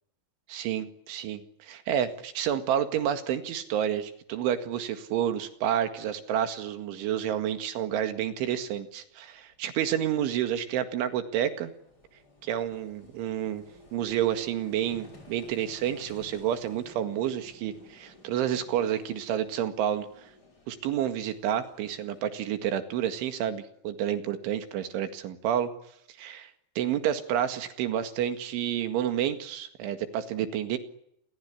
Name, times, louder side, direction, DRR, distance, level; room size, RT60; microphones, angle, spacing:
voice 1, 0.5-11.7 12.4-13.6 13.9-20.3 20.7-25.7 26.2-26.5 26.8-30.8, right 10 dB, 75° right, 9 dB, 4.3 m, -29 dB
Vehicle, 6.5-6.6 8.5-8.6 8.8-22.2, left 2 dB, 20° left, 5.8 m, -55 dB
28.5 x 23.5 x 8.5 m, 0.74 s
omnidirectional pair, 5.6 m